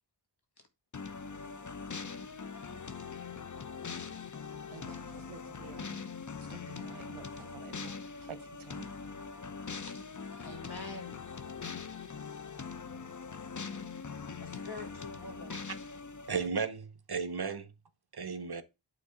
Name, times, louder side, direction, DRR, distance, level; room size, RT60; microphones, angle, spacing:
sound 1, 0.9-16.5, left 5 dB, 40° left, 0.7 m, -42 dB
voice 1, 4.7-6.0 6.5-8.9, right 6 dB, 85° right, 0.9 m, -50 dB
voice 2, 10.4-11.2 14.4-15.5, left 3 dB, 55° left, 2.0 m, -45 dB
voice 3, 16.3-17.7 18.1-18.6, right 5 dB, 55° right, 0.9 m, -35 dB
9.1 x 3.8 x 3.6 m
wide cardioid pair, 45°, 47 cm